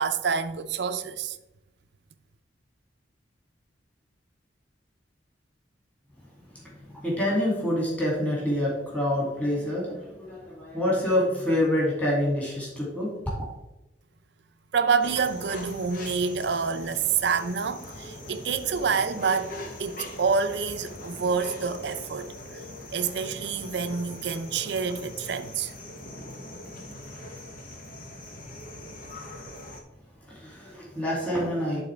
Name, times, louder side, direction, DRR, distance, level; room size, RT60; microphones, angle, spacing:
voice 1, 0.0-1.4 14.7-22.3 22.9-25.7, right 5 dB, 65° right, 0.5 m, -27 dB
voice 2, 6.6-13.1 30.3-31.8, left 1 dB, 10° left, 2.5 m, -27 dB
sound 1, 15.0-29.8, left 1 dB, 50° left, 1.1 m, -41 dB
11.0 x 4.1 x 3.4 m
head